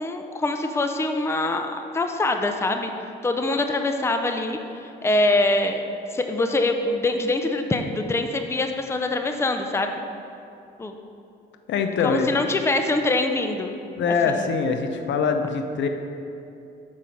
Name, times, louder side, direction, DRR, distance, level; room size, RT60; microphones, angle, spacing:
voice 1, 0.0-2.9 3.2-5.8 6.1-10.0 10.8-10.9 12.0-13.7 14.3-14.5, left 2 dB, 15° left, 5 dB, 0.5 m, -24 dB
voice 2, 11.7-12.4 14.0-15.9, left 5 dB, 70° left, 6 dB, 0.6 m, -23 dB
6.3 x 5.1 x 5.7 m, 2.7 s
cardioid pair, 90°, 20 cm